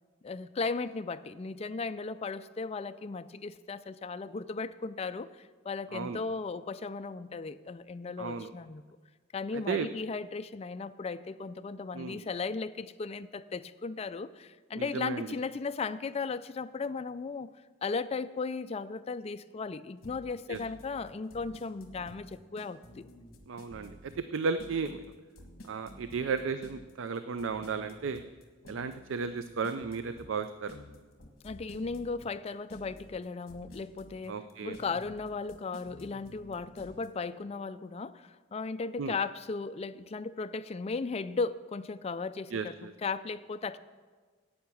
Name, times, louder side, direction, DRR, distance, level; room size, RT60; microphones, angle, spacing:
voice 1, 0.2-8.8 9.3-17.5 17.8-23.1 31.4-34.4 34.6-43.8, left 4 dB, 30° left, 12 dB, 0.3 m, -36 dB
voice 2, 8.2-8.5 9.5-9.9 11.9-12.2 14.8-15.3 20.5-20.6 23.5-23.9 24.3-25.0 25.7-28.2 28.7-30.8 34.3-34.8 39.0-39.2 42.5-42.9, right 5 dB, 65° right, 11 dB, 0.4 m, -34 dB
sound 1, 20.0-37.1, left 1 dB, 50° left, 1.4 m, -51 dB
10.5 x 8.6 x 7.0 m, 1.5 s
head